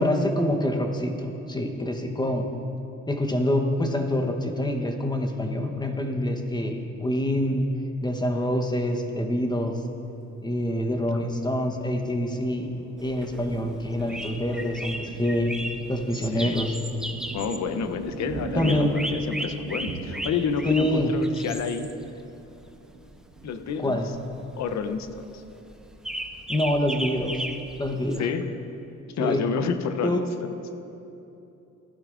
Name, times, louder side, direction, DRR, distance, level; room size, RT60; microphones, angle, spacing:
voice 1, 0.0-2.5 3.1-7.7 8.0-9.8 10.4-12.7 13.0-15.6 15.9-16.7 18.6-19.0 20.6-21.1 23.8-24.1 26.5-27.4 27.8-28.3 29.2-29.4 30.0-30.2, left 1 dB, 15° left, 4 dB, 1.0 m, -26 dB
Thunder, 10.5-24.9 25.4-25.5 25.8-26.4, right 4 dB, 70° right, 1.4 m, -41 dB
sound 1, 13.0-28.2, right 1 dB, ahead, 0.5 m, -36 dB
voice 2, 16.2-16.6 17.3-21.9 23.4-24.0 24.6-25.4 28.2-28.5 29.1-30.8, left 6 dB, 65° left, 9 dB, 0.7 m, -30 dB
15.0 x 11.5 x 2.5 m, 2.9 s
cardioid pair, 90°, 30 cm